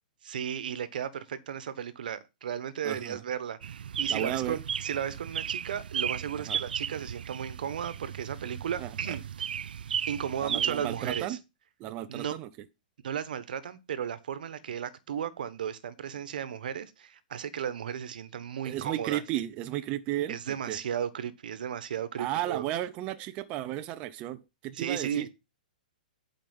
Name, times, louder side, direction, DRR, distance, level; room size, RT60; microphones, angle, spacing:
voice 1, 0.2-9.2 10.1-11.4 12.1-12.3 13.0-19.2 20.3-22.6 24.7-25.3, right 8 dB, 70° right, 1.3 m, -35 dB
voice 2, 2.8-3.2 4.1-4.6 6.5-6.6 8.8-9.2 10.4-11.4 11.8-12.5 18.6-20.8 22.2-25.3, right 13 dB, 25° right, 0.6 m, -34 dB
sound 1, 3.6-11.3, right 8 dB, 85° right, 0.4 m, -35 dB
11.0 x 5.2 x 5.3 m
hypercardioid pair, 155°, 5 cm